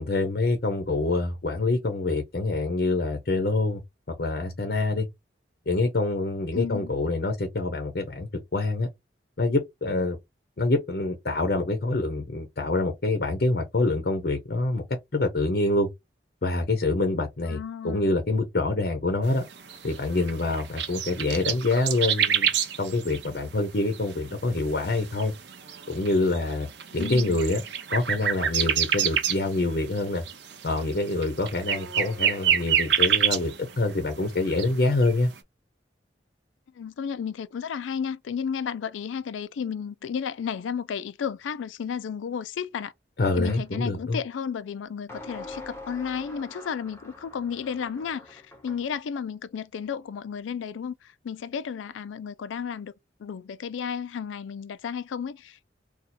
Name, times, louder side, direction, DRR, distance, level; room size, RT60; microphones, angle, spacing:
voice 1, 0.0-3.8 4.2-5.1 5.7-8.9 9.4-10.2 10.6-14.8 15.1-15.9 16.4-19.4 19.8-22.5 22.8-25.3 25.9-27.6 27.9-30.2 30.6-35.3 43.2-44.2, left 2 dB, 55° left, 0.6 m, -26 dB
voice 2, 6.5-6.9 17.5-18.1 27.0-27.4 36.8-42.9 43.4-52.9 53.2-55.6, left 7 dB, 90° left, 0.3 m, -33 dB
sound 1, 19.3-34.0 34.2-35.1, right 9 dB, 70° right, 0.7 m, -28 dB
sound 2, 43.5-43.7 45.1-48.9, left 2 dB, 15° left, 0.7 m, -44 dB
2.7 x 2.3 x 4.1 m
head